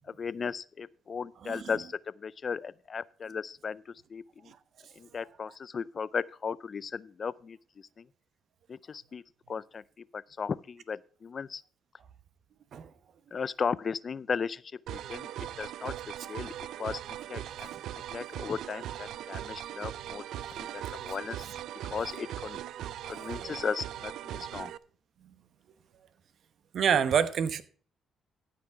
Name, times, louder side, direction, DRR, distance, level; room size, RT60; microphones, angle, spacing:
voice 1, 0.0-4.5 4.9-8.1 8.7-11.6 13.3-14.6 14.9-15.3 15.6-15.9 16.3-16.5 16.8-17.7 18.1-20.2 20.6-21.5 21.9-22.6 23.1-24.7, left 6 dB, 45° left, 0.4 m, -36 dB
sound 1, 14.9-24.8, right 12 dB, 80° right, 0.4 m, -40 dB
voice 2, 26.7-27.6, right 7 dB, 65° right, 0.9 m, -27 dB
14.5 x 5.9 x 4.6 m
cardioid pair, 90°, 0 cm